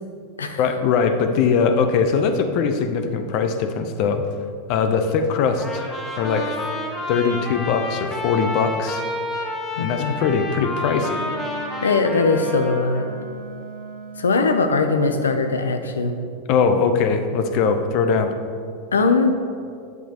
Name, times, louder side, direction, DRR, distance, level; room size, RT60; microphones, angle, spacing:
voice 1, 0.6-4.2 4.7-5.9 6.2-6.6 7.1-9.0 9.8-11.3 16.5-18.3, left 5 dB, 55° left, 7 dB, 0.8 m, -21 dB
Trumpet, 5.6-13.0, left 1 dB, 20° left, 1.5 m, -30 dB
voice 2, 9.8-10.2 11.8-13.1 14.2-16.2 18.9-19.4, left 4 dB, 90° left, 7 dB, 0.7 m, -20 dB
Wind instrument woodwind instrument, 10.7-15.5, right 3 dB, 70° right, 1.3 m, -39 dB
9.2 x 8.0 x 3.0 m, 2.3 s
hypercardioid pair, 95°, 0 cm